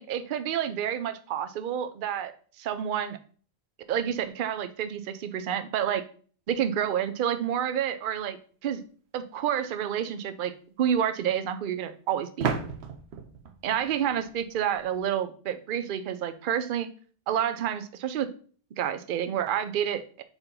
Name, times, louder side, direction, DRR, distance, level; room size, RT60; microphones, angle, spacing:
voice 1, 0.0-2.3 2.6-3.2 3.9-6.0 6.5-8.4 8.6-8.8 9.1-10.5 10.8-12.5 13.6-16.9 17.3-18.3 18.8-20.2, right 9 dB, 60° right, 10 dB, 0.7 m, -29 dB
sound 1, 9.4-9.5 12.4-15.0, right 6 dB, 80° right, 1.0 m, -34 dB
4.4 x 4.2 x 5.1 m, 0.43 s
omnidirectional pair, 1.1 m